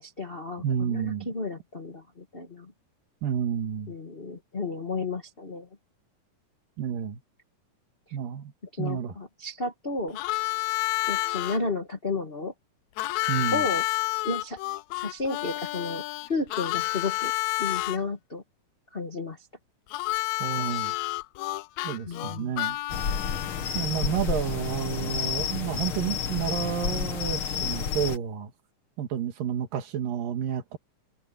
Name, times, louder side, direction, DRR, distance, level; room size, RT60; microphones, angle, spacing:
voice 1, 0.0-2.7 3.9-5.7 8.7-10.2 11.1-12.5 13.5-13.8 14.2-14.6 14.9-17.3 17.6-18.4 18.9-19.5 22.0-22.5, left 3 dB, 35° left, 0.9 m, -32 dB
voice 2, 0.6-1.3 3.2-4.0 6.8-7.2 8.1-8.5 8.8-9.2 13.3-13.6 20.4-20.9 21.8-22.8 23.7-28.5 29.0-30.8, right 9 dB, 85° right, 3.5 m, -30 dB
Harmonica, 10.1-11.6 13.0-18.0 19.9-23.8, left 20 dB, 90° left, 1.6 m, -30 dB
sound 1, 22.9-28.2, left 7 dB, 50° left, 1.9 m, -30 dB
omnidirectional pair, 3.8 m